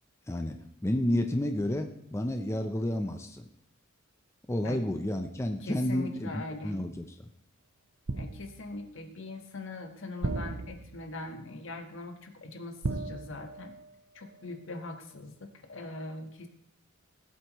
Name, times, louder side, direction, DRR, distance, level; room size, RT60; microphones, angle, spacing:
voice 1, 0.8-3.4 4.5-7.1, left 1 dB, 15° left, 5 dB, 0.6 m, -30 dB
voice 2, 5.6-6.8 8.1-13.8 14.1-16.5, left 2 dB, 65° left, 5 dB, 1.4 m, -41 dB
sound 1, 8.1-8.8 10.2-11.2 12.8-13.9 14.2-14.4, right 3 dB, 80° right, 0.7 m, -36 dB
18.5 x 8.1 x 3.1 m, 0.75 s
head